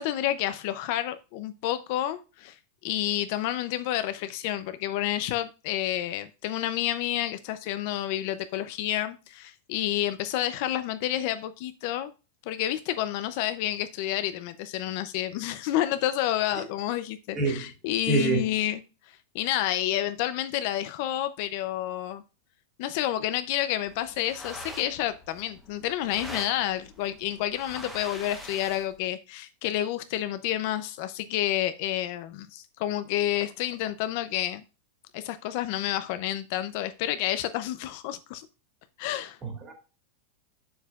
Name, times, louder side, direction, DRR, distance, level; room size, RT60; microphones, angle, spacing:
voice 1, 0.0-2.6 2.8-12.1 12.5-18.8 19.1-22.2 22.8-34.6 35.1-38.5 39.0-39.4, left 13 dB, 45° left, 0.5 m, -29 dB
voice 2, 17.3-17.7 18.1-18.4 39.4-39.7, right 3 dB, 20° right, 2.0 m, -26 dB
sound 1, 23.9-29.0, equal, ahead, 1.0 m, -44 dB
7.1 x 7.1 x 2.3 m
supercardioid pair, 170°, 0 cm